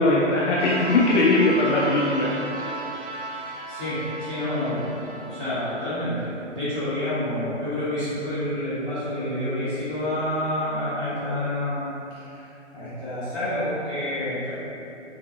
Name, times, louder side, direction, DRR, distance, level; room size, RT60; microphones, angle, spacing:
voice 1, 0.0-2.3, left 2 dB, 70° left, -5 dB, 0.5 m, -20 dB
sound 1, 0.6-5.8, right 3 dB, 65° right, 0.5 m, -35 dB
voice 2, 3.1-11.9 12.2-12.5 12.7-14.5, left 1 dB, 5° right, -25 dB, 0.4 m, -28 dB
3.3 x 2.6 x 2.3 m, 2.8 s
figure-of-eight pair, 145°, 37 cm